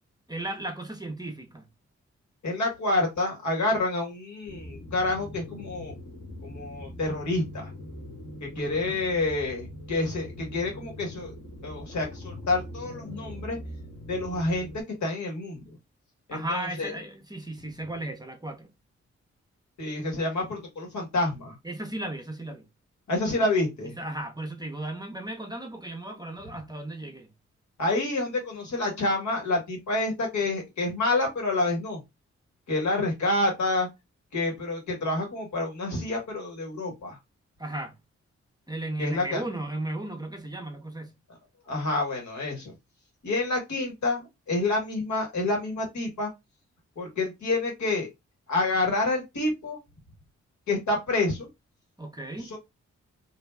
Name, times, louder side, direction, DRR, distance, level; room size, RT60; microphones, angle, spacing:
voice 1, 0.3-1.7 8.5-9.0 16.3-18.7 21.6-22.7 23.8-27.3 37.6-38.0 38.7-41.1 52.0-52.5, right 1 dB, 15° right, 0.7 m, -35 dB
voice 2, 2.4-5.9 6.4-7.7 8.4-11.3 11.6-13.6 14.1-14.7 15.0-15.8 16.3-16.9 19.8-21.6 23.1-23.9 27.8-32.0 32.7-33.9 34.3-37.2 39.0-39.4 41.7-42.7 43.2-46.3 47.0-48.1 48.5-49.8 50.7-51.5 52.4-52.6, left 2 dB, 75° left, 1.5 m, -28 dB
sound 1, 4.5-14.8, equal, 35° left, 1.1 m, -42 dB
2.6 x 2.2 x 3.2 m
supercardioid pair, 45°, 29 cm